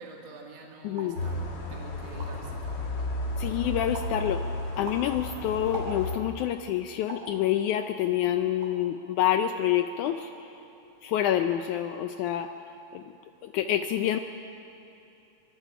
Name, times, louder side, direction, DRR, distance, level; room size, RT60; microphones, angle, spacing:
voice 1, 0.0-2.9, right 3 dB, 50° right, 0 dB, 2.6 m, -46 dB
voice 2, 0.8-1.2 3.4-4.4 4.8-10.6 11.0-12.5 12.9-13.0 13.4-14.2, left 11 dB, 80° left, 8 dB, 1.7 m, -27 dB
sound 1, 0.9-1.2 1.8-1.9 2.0-2.6 3.0-3.5 3.9-4.2 4.6-6.3 7.1-7.4 8.0-8.9 9.3-9.5 9.8-10.3 10.6-11.1, right 3 dB, 90° right, 5.0 m, -43 dB
sound 2, 1.1-6.2, left 2 dB, 40° left, 1.8 m, -33 dB
24.0 x 23.5 x 5.0 m, 2.8 s
omnidirectional pair, 4.1 m